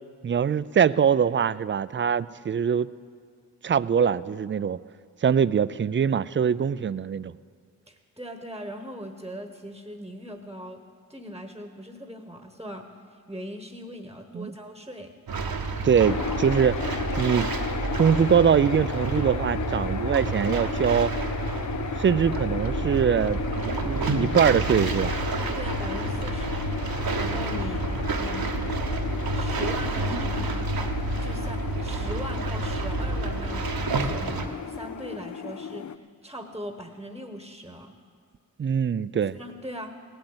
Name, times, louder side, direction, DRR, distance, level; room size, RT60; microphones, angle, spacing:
voice 1, 0.2-2.9 3.6-4.8 5.2-7.3 14.3-14.5 15.8-16.8 17.2-17.5 18.0-21.1 22.0-23.4 23.8-25.1 38.6-39.4, right 7 dB, 35° right, 18 dB, 0.4 m, -23 dB
voice 2, 7.9-10.8 11.1-15.1 25.5-26.7 26.9-27.8 28.2-28.6 29.3-30.7 31.2-38.0 39.3-39.9, equal, 10° right, 6 dB, 1.1 m, -40 dB
sound 1, 15.3-34.5, right 3 dB, 80° right, 1.1 m, -29 dB
sound 2, 16.0-36.0, left 7 dB, 55° left, 0.5 m, -34 dB
17.0 x 8.6 x 8.0 m, 2.1 s
cardioid pair, 50°, 36 cm